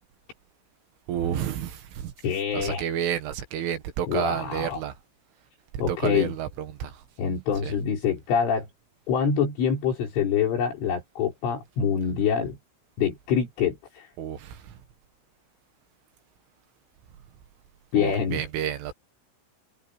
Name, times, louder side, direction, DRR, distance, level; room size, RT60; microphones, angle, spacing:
voice 1, 1.1-2.1 2.5-4.9 5.9-7.0 7.6-7.7 14.2-14.8 18.0-18.9, right 10 dB, 75° right, 4.2 m, -30 dB
voice 2, 2.2-2.9 4.1-4.8 5.8-6.3 7.2-8.7 9.1-12.6 13.0-14.1 17.9-18.4, left 7 dB, 70° left, 7.4 m, -25 dB
omnidirectional pair, 5.8 m